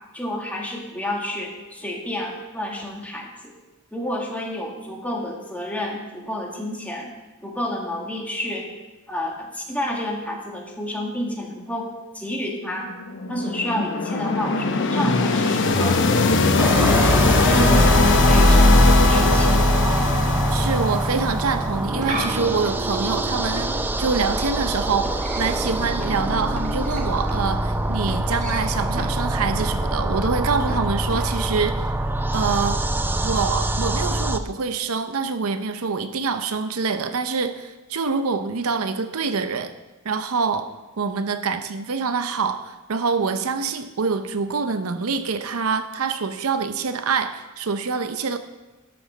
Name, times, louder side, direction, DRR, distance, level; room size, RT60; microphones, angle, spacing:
voice 1, 0.1-3.5 3.9-7.1 7.4-8.7 9.1-11.9 12.1-12.9 13.3-16.0 16.5-19.6, left 1 dB, 5° left, -1 dB, 1.7 m, -30 dB
sound 1, 12.9-21.8, left 2 dB, 60° left, 0.9 m, -19 dB
sound 2, 16.6-34.4, right 1 dB, 10° right, 0.4 m, -25 dB
voice 2, 20.5-31.9 32.3-32.8 33.2-39.7 40.0-40.7 41.0-48.4, right 5 dB, 80° right, 10 dB, 0.7 m, -25 dB
sound 3, 21.6-31.6, right 1 dB, 35° right, 1.6 m, -37 dB
12.0 x 6.2 x 6.1 m, 1.1 s
head